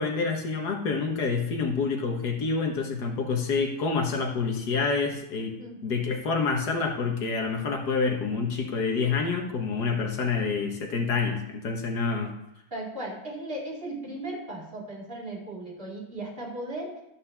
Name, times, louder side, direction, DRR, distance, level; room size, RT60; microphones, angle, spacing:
voice 1, 0.0-5.6 5.8-12.4, left 4 dB, 90° left, 3 dB, 2.0 m, -27 dB
voice 2, 12.7-17.0, right 1 dB, 35° right, -2 dB, 2.9 m, -36 dB
13.5 x 5.4 x 7.1 m, 0.82 s
omnidirectional pair, 1.7 m